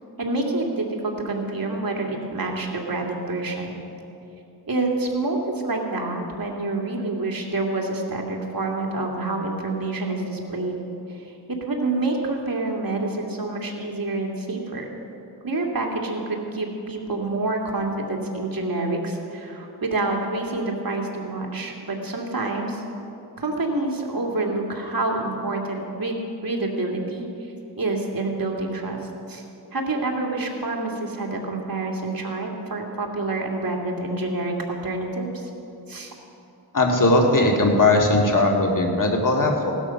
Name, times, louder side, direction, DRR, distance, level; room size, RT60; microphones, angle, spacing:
voice 1, 0.2-3.8 4.7-10.8 11.1-14.9 15.4-22.8 23.4-27.3 27.8-29.0 29.3-29.4 29.7-35.5 35.9-36.1, right 2 dB, 60° right, 0 dB, 2.5 m, -27 dB
voice 2, 36.7-39.7, left 2 dB, 55° left, 1 dB, 2.3 m, -19 dB
16.5 x 12.5 x 5.9 m, 2.7 s
wide cardioid pair, 55°, 39 cm